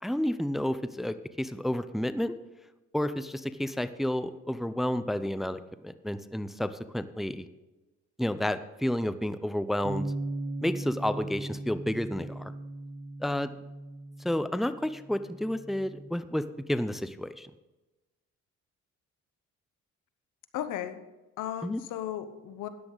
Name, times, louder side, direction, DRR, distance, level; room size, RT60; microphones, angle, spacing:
voice 1, 0.0-2.3 2.9-7.5 8.2-10.1 10.6-12.5 13.2-13.5 14.2-17.5 21.6-21.8, left 1 dB, ahead, 12 dB, 0.5 m, -31 dB
Bass guitar, 9.8-16.1, right 2 dB, 35° right, 1.1 m, -38 dB
voice 2, 20.5-21.0 21.4-22.7, left 11 dB, 85° left, 11 dB, 1.0 m, -35 dB
13.5 x 9.8 x 3.9 m, 1.1 s
cardioid pair, 90°, 30 cm